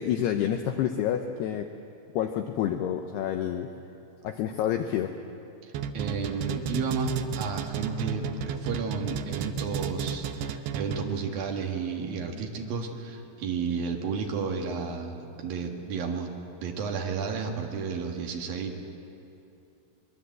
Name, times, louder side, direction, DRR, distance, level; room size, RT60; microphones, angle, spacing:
voice 1, 0.0-1.7 2.2-3.7 4.2-5.1, left 10 dB, 90° left, 6 dB, 2.3 m, -28 dB
voice 2, 5.6-16.3 16.6-18.8, right 5 dB, 60° right, 2 dB, 2.9 m, -32 dB
sound 1, 5.7-11.3, right 7 dB, 80° right, 2.5 m, -33 dB
23.5 x 22.0 x 7.8 m, 2.8 s
omnidirectional pair, 5.8 m